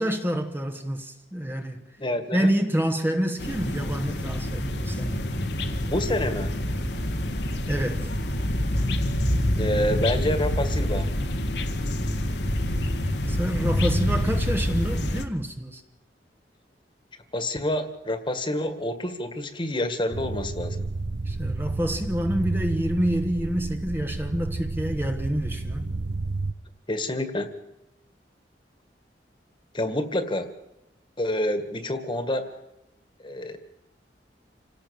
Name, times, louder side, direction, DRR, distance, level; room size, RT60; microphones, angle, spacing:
voice 1, 0.0-1.8 2.3-5.2 7.7-8.1 13.2-15.8 21.3-25.8, equal, 15° right, 1.2 m, -27 dB
voice 2, 2.0-2.5 5.9-6.6 9.5-11.1 17.3-20.9 26.9-27.5 29.7-30.5 31.2-32.5 33.2-33.6, left 1 dB, 30° left, 1.9 m, -28 dB
sound 1, 3.4-15.2, left 1 dB, 75° left, 1.9 m, -27 dB
Bicycle / Mechanisms, 3.9-10.1, equal, 60° right, 2.4 m, -43 dB
sound 2, 20.1-26.5, right 3 dB, 80° right, 0.8 m, -31 dB
27.5 x 18.0 x 7.1 m
head